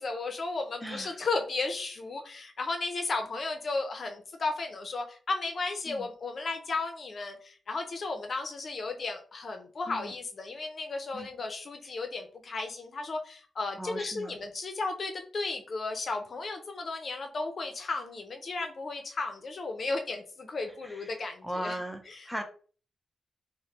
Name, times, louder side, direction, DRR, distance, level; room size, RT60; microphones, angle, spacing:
voice 1, 0.0-21.8 22.1-22.3, left 3 dB, 50° left, 5 dB, 0.6 m, -34 dB
voice 2, 0.8-1.2 5.9-6.1 9.9-10.1 11.1-11.3 11.8-11.9 13.8-14.3 20.8-22.4, equal, ahead, 5 dB, 0.6 m, -38 dB
3.2 x 2.1 x 2.8 m, 0.41 s
cardioid pair, 110°, 0 cm